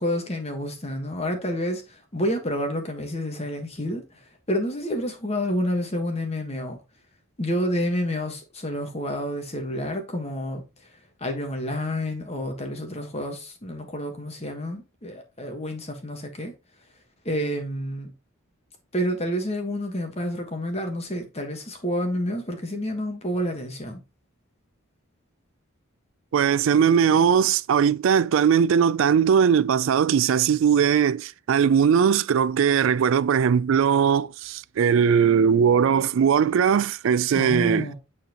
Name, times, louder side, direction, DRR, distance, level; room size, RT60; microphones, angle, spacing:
voice 1, 0.0-4.0 4.5-6.8 7.4-10.6 11.2-16.5 17.2-18.1 18.9-24.0 37.3-37.9, equal, 30° left, 1.3 m, -29 dB
voice 2, 26.3-37.9, right 7 dB, 65° right, 0.3 m, -20 dB
9.2 x 4.3 x 2.9 m
head